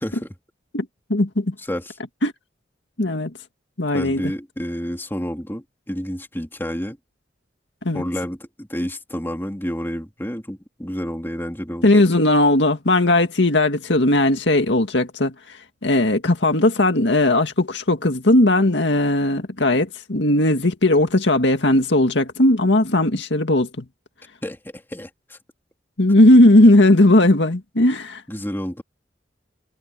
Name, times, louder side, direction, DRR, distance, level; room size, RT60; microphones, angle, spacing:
voice 1, 0.7-1.5 2.2-2.3 3.0-3.3 3.8-4.3 7.8-8.0 11.8-15.6 15.8-23.9 26.0-28.2, left 1 dB, 80° left, 2.0 m, -17 dB
voice 2, 3.9-7.0 7.9-11.9 24.4-25.4 28.3-28.8, equal, 15° left, 3.2 m, -29 dB
head